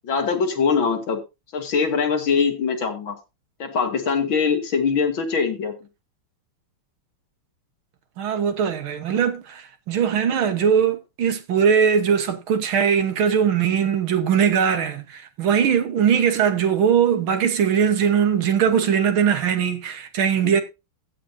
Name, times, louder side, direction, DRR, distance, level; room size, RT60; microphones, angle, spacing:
voice 1, 0.0-1.2 1.5-3.1 3.6-5.7 20.4-20.6, left 5 dB, 65° left, 2.6 m, -22 dB
voice 2, 8.2-20.6, right 7 dB, 70° right, 1.9 m, -20 dB
15.0 x 8.6 x 2.7 m
omnidirectional pair, 2.4 m